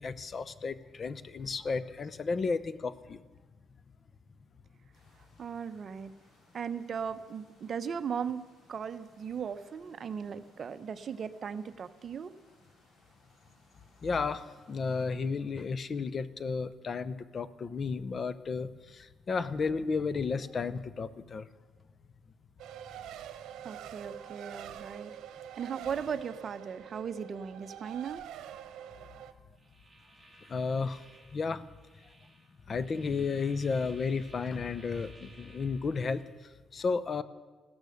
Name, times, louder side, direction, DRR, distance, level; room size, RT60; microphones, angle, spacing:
voice 1, 0.0-3.2 14.0-21.5 30.5-31.0 31.3-31.6 32.7-36.2 36.7-37.2, left 4 dB, 35° left, 16 dB, 0.7 m, -33 dB
sound 1, 4.9-15.0, left 2 dB, 60° left, 6.6 m, -65 dB
voice 2, 5.4-6.1 6.5-8.4 8.7-12.3 23.6-25.2 25.6-28.2, right 7 dB, 45° right, 11 dB, 0.8 m, -37 dB
Race car auto racing, 22.6-29.3, right 10 dB, 85° right, 1.0 m, -45 dB
sound 2, 29.5-36.3, right 1 dB, 5° right, 2.5 m, -58 dB
16.0 x 13.5 x 6.5 m, 1.3 s
cardioid pair, 125°, 0 cm